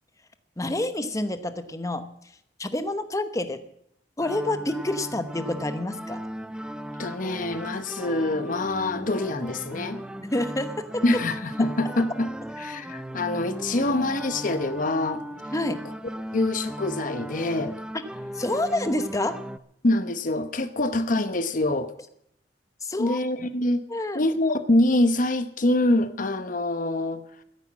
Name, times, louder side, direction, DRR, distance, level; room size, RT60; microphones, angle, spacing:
voice 1, 0.6-2.0 2.6-3.6 4.2-6.2 10.2-11.0 15.5-15.8 18.4-19.4 22.8-23.2 23.9-24.2, left 1 dB, 20° left, 0.9 m, -28 dB
sound 1, 4.2-19.6, equal, 5° right, 0.5 m, -37 dB
voice 2, 7.0-10.0 11.0-15.2 15.8-15.9 16.3-17.8 19.8-21.9 23.0-23.8 24.1-27.4, left 1 dB, 50° left, 0.9 m, -25 dB
13.0 x 10.5 x 7.4 m
head